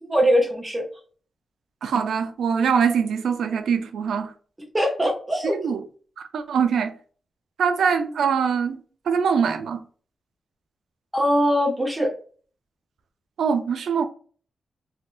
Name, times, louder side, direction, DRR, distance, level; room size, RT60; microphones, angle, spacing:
voice 1, 0.0-0.9 4.7-5.6 11.1-12.1, equal, 10° right, 0.9 m, -21 dB
voice 2, 1.8-4.3 5.5-5.8 6.2-6.9 7.6-8.8 9.1-9.8 13.4-14.0, right 6 dB, 85° right, 0.4 m, -23 dB
3.4 x 2.6 x 2.4 m
wide cardioid pair, 175°, 0 cm